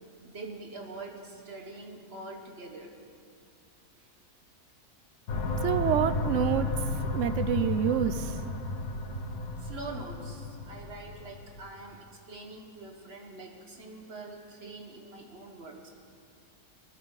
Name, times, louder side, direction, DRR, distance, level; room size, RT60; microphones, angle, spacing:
voice 1, 0.2-2.9 9.6-15.9, right 2 dB, 40° right, 2 dB, 1.5 m, -44 dB
sound 1, 5.3-11.6, left 2 dB, 65° left, 1.5 m, -33 dB
voice 2, 5.6-6.7 7.1-8.4, right 9 dB, 70° right, 12 dB, 0.7 m, -27 dB
19.5 x 12.5 x 4.0 m, 2.3 s
omnidirectional pair, 1.7 m